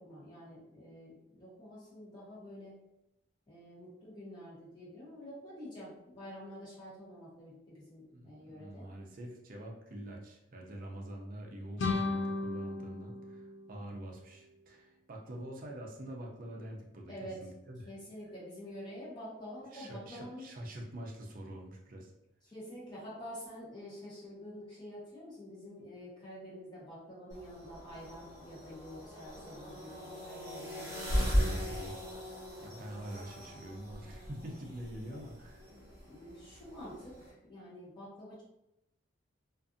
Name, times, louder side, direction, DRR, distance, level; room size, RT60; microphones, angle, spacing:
voice 1, 0.0-2.7 3.5-8.8 17.1-17.4 17.9-20.5 22.4-31.7 35.1-35.2 35.7-38.4, equal, 25° left, -9 dB, 1.0 m, -48 dB
voice 2, 8.1-17.9 19.7-22.1 31.2-31.9 32.6-35.6, right 1 dB, 45° right, 0 dB, 0.5 m, -45 dB
sound 1, 11.8-14.5, left 3 dB, 75° left, 0.4 m, -36 dB
sound 2, 27.3-37.3, equal, 15° right, 1.0 m, -38 dB
2.5 x 2.5 x 2.5 m, 0.86 s
head